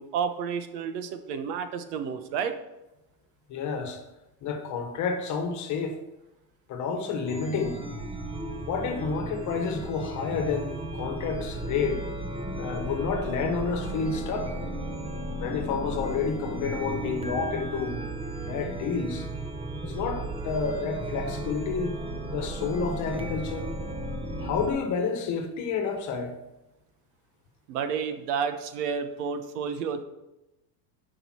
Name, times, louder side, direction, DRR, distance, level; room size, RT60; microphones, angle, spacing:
voice 1, 0.0-2.5 27.7-30.0, right 6 dB, 85° right, 1.2 m, -31 dB
voice 2, 3.5-4.0 4.4-6.0 6.7-7.8 8.7-12.0 12.6-14.6 15.3-17.9 18.5-19.3 19.8-21.9 22.3-23.7 24.4-26.3, left 5 dB, 40° left, 1.3 m, -30 dB
Chime, 7.2-24.7, right 1 dB, 10° right, 0.7 m, -35 dB
12.0 x 5.2 x 4.4 m
cardioid pair, 150°, 46 cm